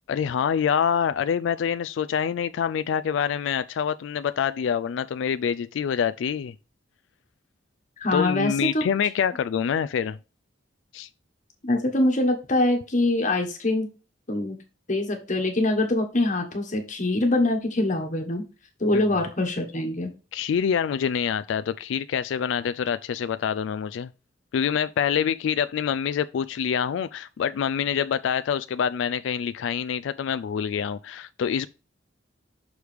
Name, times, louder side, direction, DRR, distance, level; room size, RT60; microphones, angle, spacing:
voice 1, 0.1-6.5 8.1-10.2 10.9-11.1 18.9-19.0 20.3-24.1 24.5-31.7, left 7 dB, 70° left, 0.3 m, -26 dB
voice 2, 8.0-8.8 11.6-13.9 14.3-14.6 14.9-18.4 18.8-20.1, left 2 dB, 40° left, 1.4 m, -24 dB
6.4 x 4.7 x 3.4 m
head